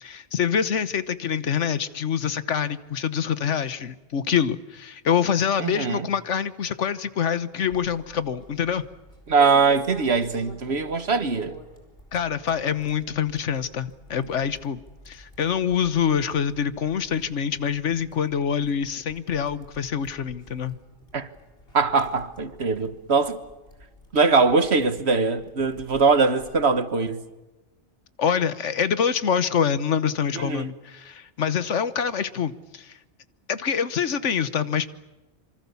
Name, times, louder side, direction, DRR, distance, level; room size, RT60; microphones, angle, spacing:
voice 1, 0.0-8.8 12.1-14.8 15.1-20.7 28.2-33.0 33.5-34.9, left 7 dB, 85° left, 1.4 m, -25 dB
voice 2, 5.6-6.0 9.3-11.5 21.1-21.3 21.7-23.4 24.1-27.2 30.3-30.6, right 4 dB, 65° right, 1.6 m, -21 dB
sound 1, 7.6-26.8, equal, 55° left, 4.7 m, -49 dB
27.0 x 25.0 x 7.1 m
omnidirectional pair, 1.2 m